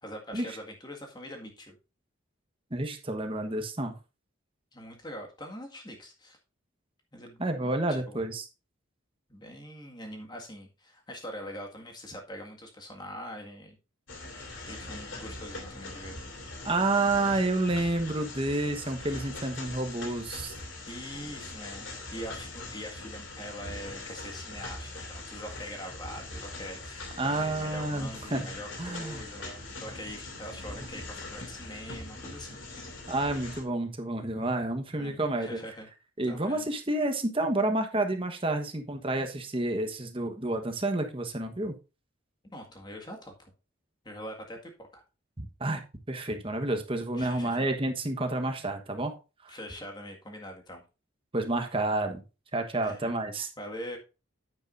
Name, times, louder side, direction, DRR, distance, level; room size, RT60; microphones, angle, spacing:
voice 1, 0.0-1.8 4.7-6.4 7.1-7.4 7.9-8.2 9.3-13.8 14.7-16.2 20.9-32.9 35.0-35.9 36.3-36.7 42.5-43.5 44.0-45.0 47.2-47.7 49.5-50.8 52.8-54.0, equal, 20° left, 2 dB, 1.8 m, -43 dB
voice 2, 2.7-3.9 7.4-8.5 16.6-20.5 27.2-28.5 28.8-29.2 33.1-35.6 36.2-41.8 45.4-49.1 49.4-49.5 51.3-52.2 52.5-53.5, right 2 dB, 25° right, 6 dB, 1.2 m, -29 dB
sound 1, 14.1-33.6, left 2 dB, 65° left, 2.5 m, -42 dB
9.5 x 8.7 x 2.6 m, 0.30 s
head